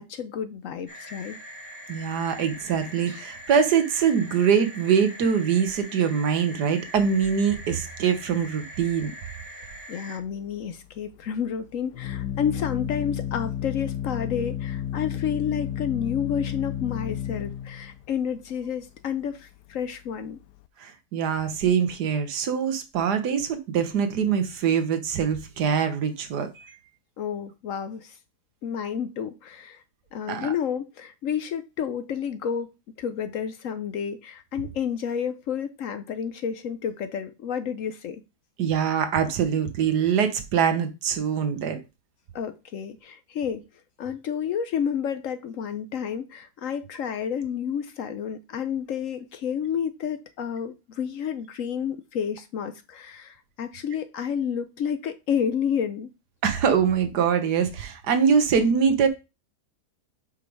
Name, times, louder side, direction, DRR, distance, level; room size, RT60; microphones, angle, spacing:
voice 1, 0.0-1.4 9.9-20.4 27.2-28.2 28.6-29.8 30.1-32.7 33.0-38.2 42.3-43.6 44.0-56.1, left 8 dB, 65° left, 0.9 m, -30 dB
sound 1, 0.9-10.2, equal, 10° left, 1.7 m, -42 dB
voice 2, 1.9-9.1 20.8-26.7 30.3-30.5 38.6-41.8 56.4-59.1, right 7 dB, 85° right, 1.6 m, -23 dB
Organ, 10.2-20.7, left 10 dB, 90° left, 1.2 m, -33 dB
5.6 x 5.0 x 4.6 m
omnidirectional pair, 1.7 m